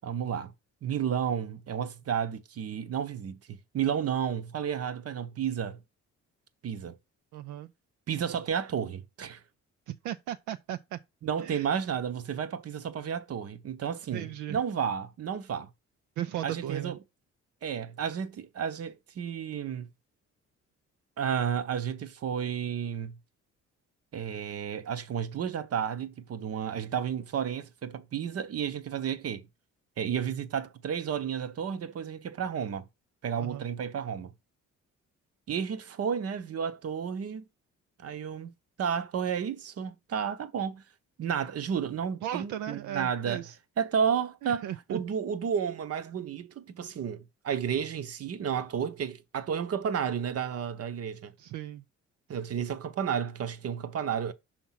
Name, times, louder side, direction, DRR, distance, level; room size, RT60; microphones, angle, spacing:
voice 1, 0.0-0.5 0.8-5.8 6.6-7.0 8.1-9.4 11.2-15.7 16.4-17.0 17.6-19.9 21.2-23.2 24.1-29.4 30.0-32.9 33.2-34.3 35.5-37.4 38.0-38.5 38.8-40.8 41.2-43.4 43.8-51.3 52.3-54.3, right 8 dB, 50° right, 0.9 m, -32 dB
voice 2, 7.3-7.7 9.9-11.0 11.4-11.7 14.1-14.6 16.2-17.0 33.4-33.7 42.2-43.6 44.4-45.0 51.4-51.8, right 12 dB, 75° right, 0.5 m, -36 dB
6.0 x 3.6 x 5.7 m
cardioid pair, 90°, 30 cm